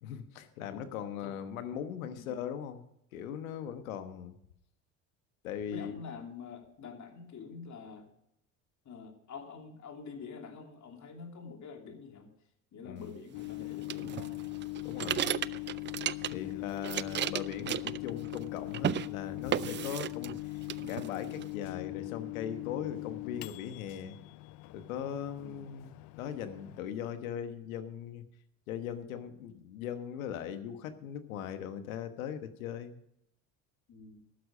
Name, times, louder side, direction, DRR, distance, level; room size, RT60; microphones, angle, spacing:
voice 1, 0.0-2.8 3.1-4.3 5.4-6.0 12.8-13.1 14.8-15.3 16.3-24.2 24.7-25.9 26.2-28.2 28.7-33.0, left 9 dB, 85° left, 10 dB, 1.3 m, -39 dB
voice 2, 0.7-1.4 2.1-2.3 5.7-8.1 8.8-12.3 12.7-14.4 25.4-25.7 33.9-34.2, left 5 dB, 45° left, 3 dB, 3.0 m, -47 dB
Microwave oven, 13.3-26.8, left 23 dB, 60° left, 0.7 m, -41 dB
sound 1, 13.9-16.5 16.8-18.5 18.7-19.1 19.5-20.4 20.7-21.5, right 11 dB, 30° right, 0.4 m, -34 dB
12.5 x 10.5 x 5.0 m, 0.77 s
hypercardioid pair, 70°, 41 cm